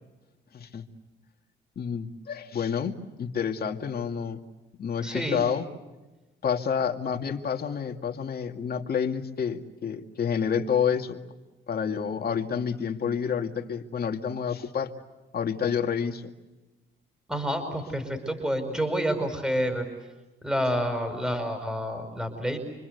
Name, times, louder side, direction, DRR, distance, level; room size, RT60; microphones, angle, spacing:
voice 1, 0.5-0.9 1.8-4.4 4.8-5.6 6.4-11.2 11.7-14.9 15.3-16.3, left 7 dB, 50° left, 4 dB, 2.4 m, -29 dB
voice 2, 5.0-5.4 17.3-19.9 20.4-22.6, equal, 5° right, 6 dB, 5.4 m, -28 dB
28.0 x 25.5 x 8.1 m, 1.1 s
cardioid pair, 90°, 20 cm